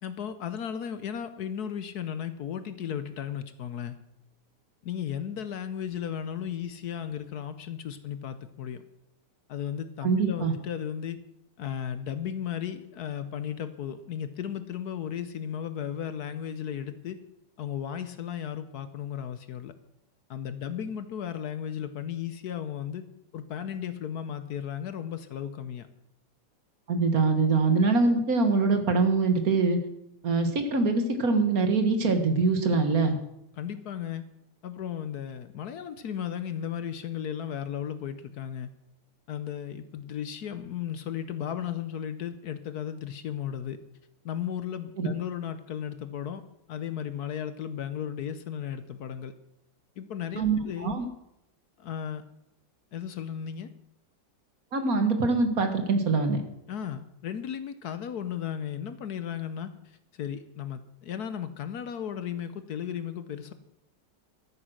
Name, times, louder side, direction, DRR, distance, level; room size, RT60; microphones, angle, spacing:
voice 1, 0.0-4.0 4.8-8.8 9.5-11.2 11.6-17.2 17.6-19.7 20.3-23.1 23.3-25.9 33.6-34.2 34.6-38.7 39.3-43.8 44.2-46.4 46.7-49.3 50.0-50.9 51.8-52.2 52.9-53.7 56.7-63.5, left 9 dB, 65° left, 11 dB, 1.2 m, -35 dB
voice 2, 10.0-10.5 26.9-29.8 30.2-33.2 45.0-45.1 50.4-51.0 54.7-56.4, right 4 dB, 55° right, 7 dB, 1.8 m, -24 dB
13.0 x 9.5 x 6.3 m, 0.82 s
omnidirectional pair, 1.9 m